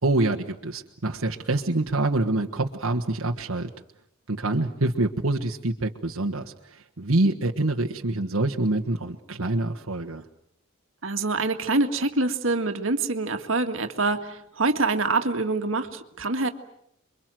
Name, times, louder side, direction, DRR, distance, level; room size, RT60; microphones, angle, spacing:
voice 1, 0.0-3.7 4.3-6.4 7.0-10.2, right 2 dB, 90° right, 3 dB, 1.5 m, -25 dB
voice 2, 11.0-16.5, right 3 dB, 70° right, 6 dB, 1.9 m, -25 dB
28.0 x 23.5 x 7.7 m, 0.72 s
head